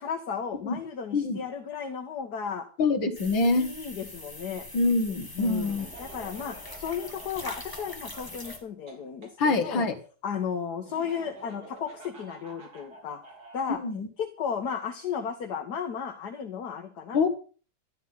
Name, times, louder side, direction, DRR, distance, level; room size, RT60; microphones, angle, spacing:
voice 1, 0.0-2.7 3.6-4.7 5.4-9.9 10.2-13.2 13.5-13.8 14.2-17.3, left 7 dB, 60° left, 5 dB, 1.9 m, -34 dB
voice 2, 2.8-3.7 4.7-5.9 9.4-10.0 13.8-14.1 17.1-17.3, left 3 dB, 85° left, 4 dB, 2.3 m, -25 dB
sound 1, 3.1-8.6, left 1 dB, 10° left, 1.9 m, -43 dB
Laughter, 5.6-9.3 10.8-13.8, right 2 dB, 50° right, 3.9 m, -48 dB
13.0 x 11.0 x 5.7 m, 0.39 s
omnidirectional pair, 2.1 m